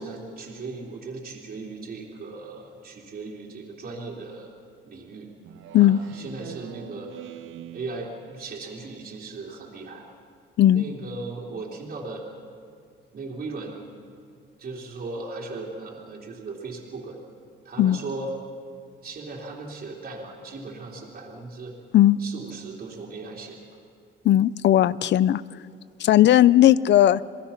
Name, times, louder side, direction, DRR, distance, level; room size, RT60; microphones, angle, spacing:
voice 1, 0.0-4.5 4.8-5.3 5.7-7.3 7.7-10.1 10.7-12.2 13.1-13.8 14.6-17.2 17.6-18.3 19.0-21.7 22.2-23.6, right 3 dB, 50° right, -4 dB, 3.4 m, -37 dB
Speech synthesizer, 5.4-8.5, right 11 dB, 80° right, 0.9 m, -43 dB
voice 2, 24.2-25.4 26.0-27.2, left 12 dB, 60° left, 20 dB, 0.5 m, -17 dB
27.5 x 19.5 x 5.8 m, 2.3 s
cardioid pair, 120°, 20 cm